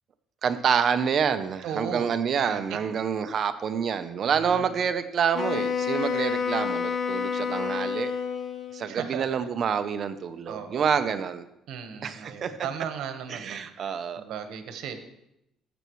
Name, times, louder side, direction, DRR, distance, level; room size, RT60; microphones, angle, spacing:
voice 1, 0.4-8.1 8.7-11.4 12.0-12.5 13.3-14.2, right 7 dB, 40° right, 10 dB, 0.6 m, -27 dB
voice 2, 1.6-2.8 4.3-4.7 8.9-9.5 10.5-11.0 11.7-15.0, right 7 dB, 70° right, 7 dB, 1.2 m, -37 dB
Wind instrument woodwind instrument, 5.3-8.9, left 6 dB, 35° left, 0.8 m, -29 dB
15.0 x 6.9 x 3.1 m, 0.82 s
cardioid pair, 150°, 0 cm